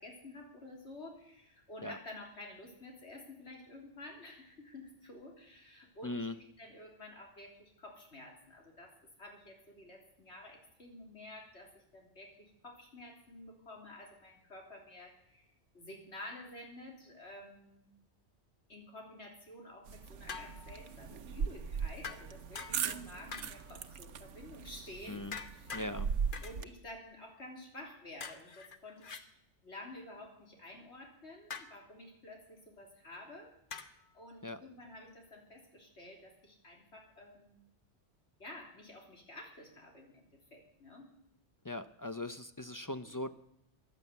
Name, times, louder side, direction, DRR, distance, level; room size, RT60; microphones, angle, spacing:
voice 1, 0.0-8.9 9.2-15.5 15.7-17.9 18.7-25.8 26.4-29.3 29.6-33.5 34.1-37.6 38.4-41.1 43.0-43.2, left 1 dB, 65° left, 1 dB, 3.7 m, -51 dB
voice 2, 6.0-6.3 25.1-25.4 25.7-26.1 34.4-34.6 41.6-43.3, left 2 dB, 25° left, 11 dB, 0.4 m, -40 dB
sound 1, 19.9-26.6, right 6 dB, 80° right, 1.2 m, -39 dB
sound 2, 20.3-20.8 22.0-23.0 23.3-23.8 25.3-25.9 26.3-26.6 28.2-29.2 31.5-31.8 33.7-34.1, left 5 dB, 50° left, 1.1 m, -45 dB
15.0 x 10.5 x 8.2 m, 0.76 s
omnidirectional pair, 1.2 m